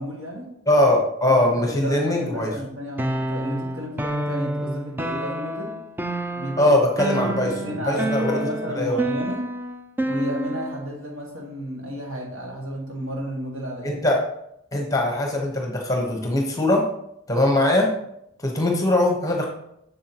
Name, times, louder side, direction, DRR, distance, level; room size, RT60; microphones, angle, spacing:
voice 1, 0.0-0.5 1.3-1.4 1.7-5.7 6.4-6.8 7.1-9.4 10.0-14.0, equal, 70° right, -2 dB, 2.0 m, -32 dB
voice 2, 0.7-2.5 6.6-7.5 7.8-8.4 8.8-9.0 13.8-14.2 14.7-16.9 17.3-17.9 18.4-19.4, left 1 dB, 15° left, 1 dB, 1.1 m, -21 dB
sound 1, 3.0-10.9, right 1 dB, 10° right, 0.3 m, -29 dB
7.3 x 6.7 x 2.9 m, 0.76 s
head